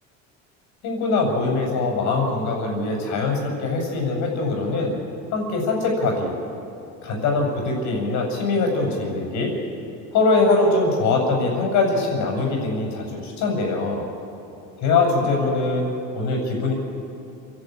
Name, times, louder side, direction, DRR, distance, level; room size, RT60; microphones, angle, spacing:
voice 1, 0.8-5.0 5.3-6.3 7.0-9.5 10.1-14.0 14.8-16.7, left 3 dB, 60° left, 1 dB, 6.4 m, -22 dB
28.5 x 11.5 x 9.0 m, 2.8 s
cardioid pair, 135°, 33 cm